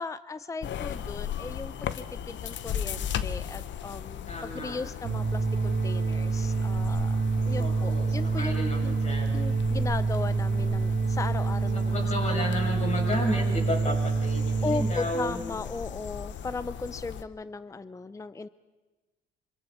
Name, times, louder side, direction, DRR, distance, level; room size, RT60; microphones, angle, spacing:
voice 1, 0.0-7.2 7.5-9.0 9.3-11.9 12.2-12.3 14.6-18.5, left 4 dB, 15° left, 15 dB, 0.6 m, -37 dB
sound 1, 0.6-17.2, left 9 dB, 70° left, 0.9 m, -38 dB
voice 2, 4.3-4.8 7.5-9.4 11.7-15.4, left 1 dB, 35° left, -1 dB, 7.5 m, -33 dB
sound 2, 5.0-14.9, right 4 dB, 50° right, 1.4 m, -27 dB
26.5 x 25.5 x 4.3 m, 1.2 s
cardioid pair, 90°, 20 cm